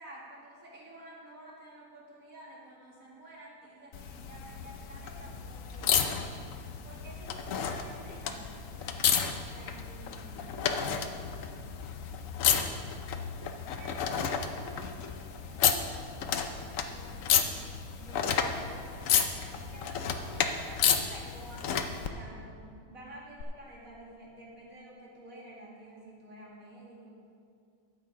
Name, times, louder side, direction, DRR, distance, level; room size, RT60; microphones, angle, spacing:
voice 1, 0.0-6.2 6.8-11.5 13.8-17.6 17.9-27.1, right 1 dB, 70° right, -4 dB, 2.6 m, -51 dB
sound 1, 3.9-22.1 23.4-23.5, left 7 dB, 70° left, 1.0 m, -31 dB
12.0 x 8.2 x 4.8 m, 2.3 s
omnidirectional pair, 1.5 m